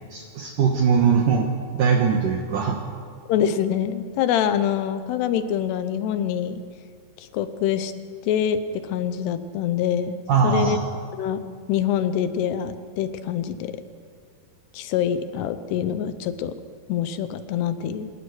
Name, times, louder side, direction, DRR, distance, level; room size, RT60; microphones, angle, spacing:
voice 1, 0.1-1.5 1.7-2.8 10.3-10.8, right 6 dB, 65° right, 1 dB, 2.5 m, -20 dB
voice 2, 3.3-6.6 7.3-7.9 8.3-10.2 10.4-10.8 11.2-11.4 11.7-13.7 14.7-16.5 16.9-18.1, left 9 dB, 80° left, 10 dB, 3.0 m, -25 dB
26.0 x 11.0 x 9.7 m, 2.1 s
omnidirectional pair, 4.7 m